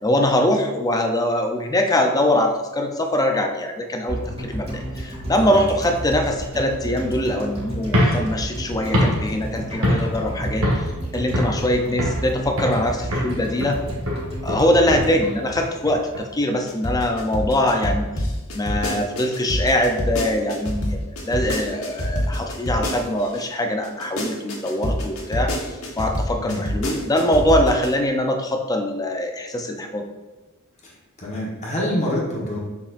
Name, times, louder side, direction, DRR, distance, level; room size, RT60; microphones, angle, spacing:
voice 1, 0.0-10.9 11.1-13.8 14.4-18.1 18.5-21.0 21.2-25.6 26.0-30.0, left 1 dB, 15° left, 4 dB, 0.6 m, -22 dB
sound 1, 4.1-16.3 16.6-16.7, right 1 dB, 30° right, 2.0 m, -31 dB
sound 2, 7.8-10.3 10.6-11.0 11.3-12.3 12.6-12.9 13.1-16.2, equal, 90° right, 1.6 m, -24 dB
sound 3, 16.7-23.4 23.8-27.9, equal, 75° left, 1.4 m, -26 dB
voice 2, 18.7-19.0 26.4-26.6 30.8-30.9 31.2-32.6, left 1 dB, 35° left, -4 dB, 1.4 m, -27 dB
6.8 x 5.4 x 2.6 m, 1.2 s
head